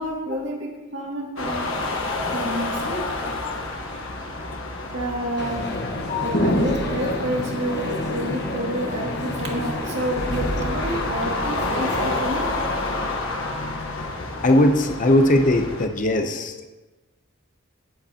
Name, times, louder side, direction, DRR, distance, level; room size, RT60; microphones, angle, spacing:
voice 1, 0.0-1.7 2.3-3.0 4.9-5.7 6.2-12.5, equal, 60° right, -2 dB, 2.3 m, -29 dB
sound 1, 1.4-15.9, left 2 dB, 75° left, 1.3 m, -30 dB
sound 2, 5.4-12.2, left 1 dB, 50° left, 1.2 m, -28 dB
voice 2, 14.4-16.7, left 1 dB, 35° left, 5 dB, 0.8 m, -19 dB
16.5 x 7.9 x 2.9 m, 1.2 s
head